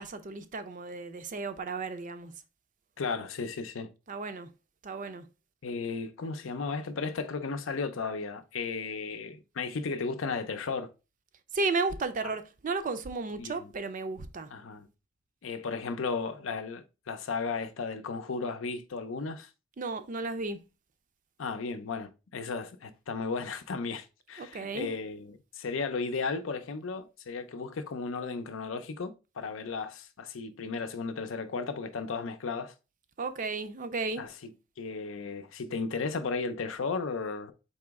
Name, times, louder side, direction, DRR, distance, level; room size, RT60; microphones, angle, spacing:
voice 1, 0.0-2.3 4.1-4.5 4.8-5.2 11.5-14.5 19.8-20.6 24.4-24.9 33.2-34.2, right 3 dB, 40° right, 0.5 m, -34 dB
voice 2, 3.0-3.9 5.6-10.9 12.2-12.3 13.4-13.7 14.5-14.9 15.4-19.5 21.4-32.7 34.2-37.5, left 4 dB, 85° left, 0.6 m, -35 dB
4.2 x 3.0 x 3.5 m
head